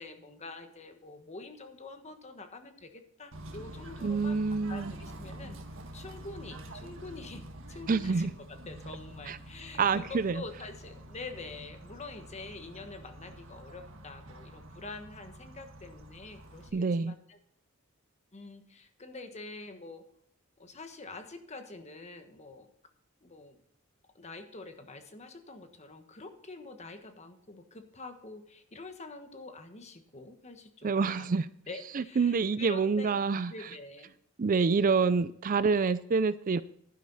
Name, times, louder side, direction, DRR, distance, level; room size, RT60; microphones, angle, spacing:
voice 1, 0.0-17.4 18.3-20.1 20.6-22.7 23.2-23.6 24.1-31.3 31.7-34.1, left 3 dB, 30° left, 7 dB, 1.4 m, -46 dB
Bird / Train, 3.3-16.7, right 1 dB, 65° right, 1.8 m, -47 dB
voice 2, 4.0-4.9 7.9-8.3 9.3-9.4 9.8-10.4 16.7-17.1 30.8-31.4 32.0-33.5 34.4-36.6, right 4 dB, 40° right, 15 dB, 0.4 m, -27 dB
11.5 x 10.5 x 4.0 m, 0.68 s
head